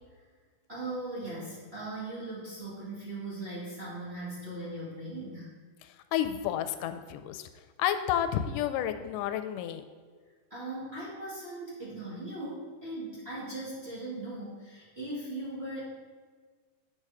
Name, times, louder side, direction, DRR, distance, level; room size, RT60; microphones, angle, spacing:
voice 1, 0.7-5.5 10.5-15.8, right 2 dB, 25° right, -8 dB, 1.7 m, -39 dB
voice 2, 5.8-7.5 7.8-9.8, left 10 dB, 85° left, 9 dB, 2.1 m, -31 dB
8.5 x 4.7 x 5.6 m, 1.5 s
omnidirectional pair, 3.7 m